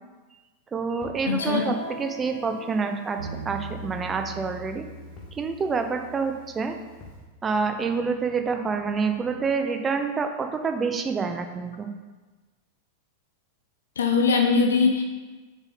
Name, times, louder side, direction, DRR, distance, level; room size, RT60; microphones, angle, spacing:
voice 1, 0.7-3.2 3.5-4.9 5.3-6.7 7.4-11.9, right 5 dB, 20° right, 6 dB, 0.6 m, -27 dB
sound 1, 1.0-1.3 3.2-3.5 3.8-3.9 5.2-5.4 7.0-7.3, left 2 dB, 25° left, 1.3 m, -46 dB
voice 2, 1.3-1.6 14.0-15.0, left 4 dB, 65° left, 2 dB, 0.7 m, -21 dB
Guitar, 1.4-6.8, left 1 dB, 45° left, 1.7 m, -43 dB
Bass guitar, 3.2-9.4, right 2 dB, 75° right, 0.6 m, -43 dB
6.9 x 3.6 x 4.1 m, 1.3 s
figure-of-eight pair, 90°, 0 cm